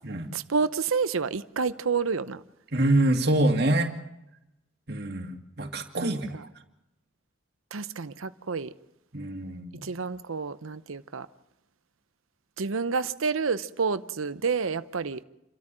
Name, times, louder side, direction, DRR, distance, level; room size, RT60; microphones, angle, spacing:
voice 1, 0.3-2.4 6.0-6.4 7.7-8.7 9.8-11.3 12.6-15.2, right 5 dB, 90° right, 0.8 m, -29 dB
voice 2, 2.7-3.9 4.9-6.4 9.1-9.8, right 1 dB, 50° right, 2.4 m, -25 dB
28.5 x 13.5 x 7.6 m
head